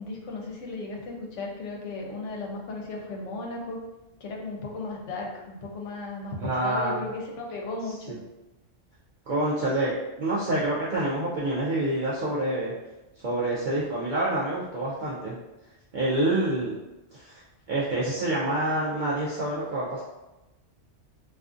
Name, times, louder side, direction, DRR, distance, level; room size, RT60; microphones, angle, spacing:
voice 1, 0.0-3.8 4.2-8.1, left 3 dB, 75° left, 0 dB, 0.9 m, -35 dB
voice 2, 6.4-7.1 8.1-8.2 9.3-9.9 10.2-12.7 13.2-15.4 15.9-16.7 17.1-17.4 17.7-20.0, right 1 dB, 65° right, -7 dB, 0.5 m, -27 dB
2.4 x 2.4 x 2.4 m, 1.0 s
omnidirectional pair, 1.3 m